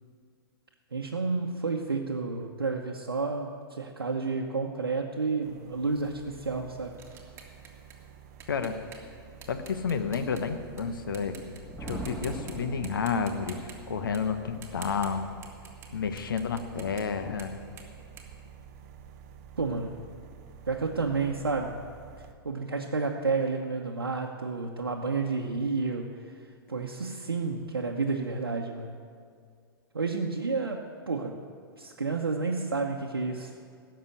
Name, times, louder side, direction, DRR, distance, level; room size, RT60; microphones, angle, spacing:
voice 1, 0.9-7.0 19.6-20.1 20.7-21.9 22.2-26.3 26.7-29.0 29.9-31.4 31.8-33.5, right 4 dB, 80° right, -1 dB, 0.9 m, -31 dB
sound 1, 5.4-22.3, right 7 dB, 45° right, 0.7 m, -50 dB
sound 2, 5.9-10.8 11.1-11.6 11.9-12.5 12.8-19.2, right 7 dB, 20° right, 1.8 m, -50 dB
voice 2, 8.5-8.8 9.5-11.4 11.8-15.3 15.9-17.6, left 5 dB, 65° left, 8 dB, 1.1 m, -30 dB
Thunder, 11.4-13.7, equal, 5° left, 2.5 m, -40 dB
16.5 x 6.7 x 8.1 m, 2.2 s
figure-of-eight pair, 100°, 12 cm